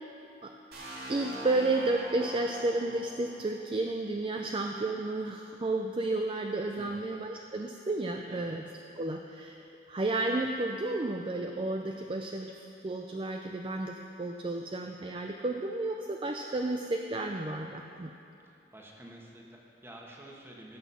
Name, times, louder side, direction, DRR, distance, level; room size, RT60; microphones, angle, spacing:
sound 1, 0.7-4.5, right 1 dB, 60° right, 2.6 m, -43 dB
voice 1, 1.1-8.7 9.0-9.6 9.9-12.5 12.8-18.1, right 2 dB, 30° right, 3 dB, 0.5 m, -32 dB
voice 2, 6.7-7.1 8.3-8.6 18.4-20.8, right 1 dB, 15° right, -2 dB, 1.4 m, -50 dB
16.0 x 6.3 x 5.6 m, 2.8 s
head